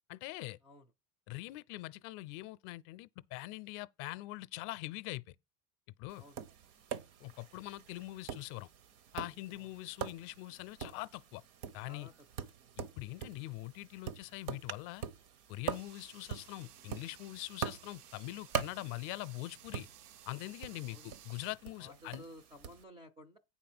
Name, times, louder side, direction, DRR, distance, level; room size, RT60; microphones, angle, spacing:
voice 1, 0.1-0.6 1.3-5.2 6.0-6.2 7.2-8.7 9.1-11.4 11.7-12.1 12.8-15.0 15.5-19.9 20.2-22.2, left 19 dB, 55° left, 0.5 m, -43 dB
Tap, 6.1-22.8, right 8 dB, 65° right, 1.0 m, -44 dB
sound 1, 15.7-21.5, right 11 dB, 90° right, 0.7 m, -57 dB
voice 2, 21.8-23.4, left 1 dB, 10° right, 0.3 m, -54 dB
9.1 x 4.2 x 6.0 m
supercardioid pair, 150°, 46 cm